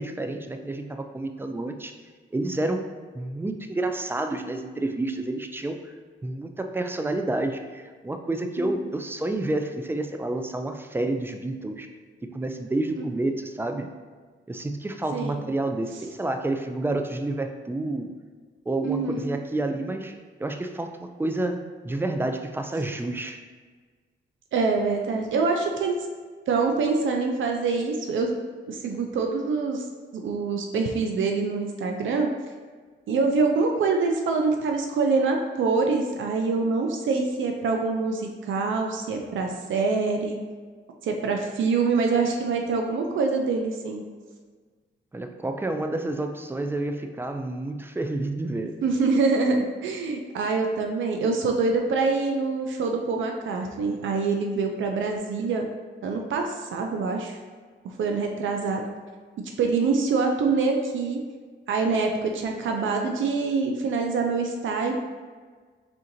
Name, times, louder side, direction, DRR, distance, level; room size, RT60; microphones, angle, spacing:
voice 1, 0.0-1.9 2.3-2.8 3.1-5.9 6.2-11.9 12.3-13.9 14.5-18.1 18.7-20.1 20.4-23.4 45.1-48.8, right 2 dB, 10° right, 6 dB, 0.3 m, -29 dB
voice 2, 15.1-15.4 18.8-19.3 24.5-26.1 26.5-28.3 28.7-29.8 30.2-32.3 33.1-40.4 41.0-44.0 48.8-55.7 56.0-57.4 58.0-58.8 59.6-61.2 61.7-64.9, right 4 dB, 80° right, 3 dB, 0.5 m, -25 dB
4.3 x 3.7 x 2.6 m, 1.5 s
cardioid pair, 100°, 20 cm